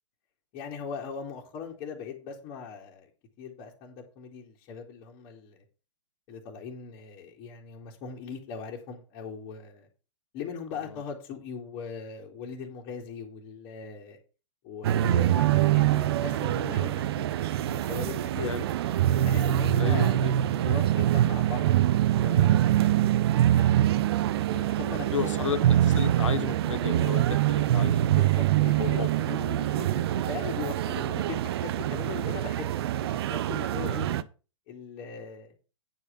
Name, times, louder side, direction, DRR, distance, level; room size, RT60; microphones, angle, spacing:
voice 1, 0.5-3.1 3.4-5.6 6.3-9.9 10.3-14.2 14.6-18.7 19.2-20.2 20.6-21.7 22.1-22.8 23.5-23.9 24.4-25.5 28.1-34.1 34.7-35.5, left 6 dB, 35° left, 2.3 m, -40 dB
sound 1, 14.8-34.2, right 12 dB, 50° right, 0.6 m, -24 dB
voice 2, 17.6-17.9 18.4-18.6 19.8-20.3 23.0-23.2 25.1-28.0 28.8-29.1 33.8-34.2, left 8 dB, 75° left, 0.7 m, -34 dB
9.2 x 5.0 x 6.4 m
hypercardioid pair, 120°, 16 cm